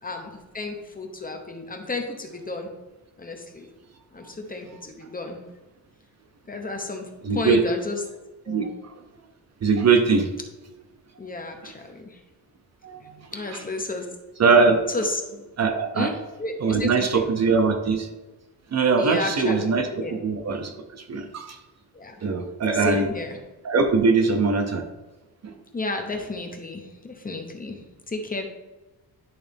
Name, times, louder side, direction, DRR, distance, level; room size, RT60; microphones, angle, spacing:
voice 1, 0.0-2.7 3.2-3.7 4.1-5.4 6.5-8.0 8.4-8.7 11.2-12.2 13.3-14.1 14.9-15.2 15.9-17.3 19.0-20.2 21.9-22.2 22.7-23.4 25.7-28.5, left 3 dB, 20° left, 4 dB, 0.8 m, -32 dB
voice 2, 7.2-7.6 8.5-8.9 9.6-10.3 11.6-11.7 12.8-13.6 14.4-14.8 15.6-16.1 16.6-18.1 18.7-21.6 22.2-23.1 23.6-24.9 25.4-25.6, right 4 dB, 40° right, 6 dB, 0.7 m, -22 dB
10.5 x 3.8 x 3.5 m, 1.1 s
wide cardioid pair, 150°, 39 cm